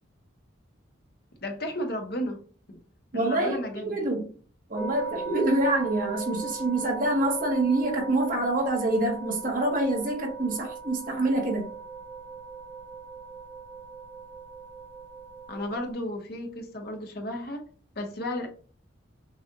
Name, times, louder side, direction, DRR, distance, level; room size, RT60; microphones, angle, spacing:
voice 1, 1.4-2.4 2.7-2.8 3.1-4.0 15.5-17.6 18.0-18.5, left 1 dB, 50° left, 1.0 m, -33 dB
voice 2, 3.1-4.3 4.7-11.7, right 2 dB, 40° right, 1.2 m, -26 dB
sound 1, 4.8-15.9, right 5 dB, 10° left, 0.6 m, -39 dB
6.3 x 2.4 x 2.7 m
head